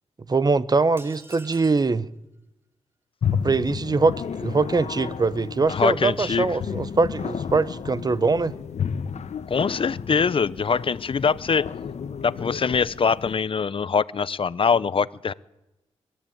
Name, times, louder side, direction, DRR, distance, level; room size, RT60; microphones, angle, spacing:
voice 1, 0.3-2.1 3.4-8.5, right 4 dB, 35° right, 0.8 m, -22 dB
sound 1, 1.0-2.0, right 1 dB, 20° right, 1.6 m, -46 dB
sound 2, 3.2-13.3, left 7 dB, 75° left, 1.1 m, -32 dB
voice 2, 5.7-6.5 9.5-11.7 12.2-15.3, left 6 dB, 50° left, 0.6 m, -23 dB
22.5 x 13.5 x 8.7 m
cardioid pair, 75°, 12 cm